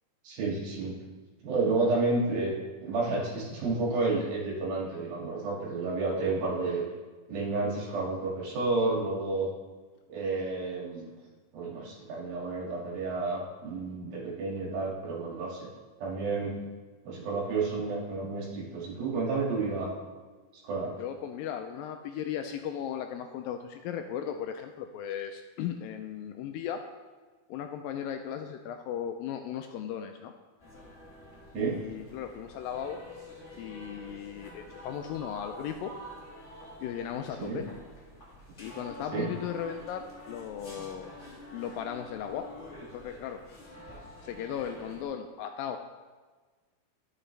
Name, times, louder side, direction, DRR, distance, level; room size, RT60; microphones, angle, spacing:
voice 1, 0.2-0.9 1.4-2.5 2.8-6.8 7.3-9.5 10.1-11.1 11.5-15.7 16.0-16.6 17.1-19.9 20.6-20.9 31.5-31.8 37.4-37.6 39.1-39.3, right 3 dB, 70° right, -4 dB, 3.7 m, -30 dB
voice 2, 21.0-26.8 27.5-30.3 31.6-33.0 33.6-35.9 36.8-37.7 38.6-41.1 41.5-42.5 42.9-43.4 44.2-45.9, left 9 dB, 80° left, 6 dB, 2.1 m, -36 dB
sound 1, 30.6-45.1, left 1 dB, 30° left, 1.3 m, -48 dB
12.5 x 6.8 x 3.3 m, 1.4 s
omnidirectional pair, 4.4 m